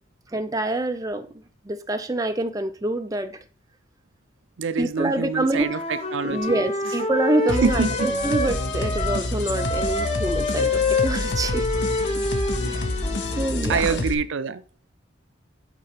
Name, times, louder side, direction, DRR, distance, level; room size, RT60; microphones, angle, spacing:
voice 1, 0.3-1.3 1.6-3.4 4.8-5.7 6.2-11.7 12.6-12.9 13.4-14.0, right 2 dB, 20° right, 0.5 m, -26 dB
voice 2, 4.6-6.6 7.6-8.1 12.6-12.9 13.7-14.6, right 5 dB, 75° right, 0.5 m, -26 dB
Wind instrument woodwind instrument, 5.5-9.3 9.6-13.6, left 2 dB, 30° left, 1.2 m, -27 dB
sound 1, 7.5-14.1, left 2 dB, 60° left, 0.9 m, -28 dB
8.3 x 4.3 x 5.0 m
head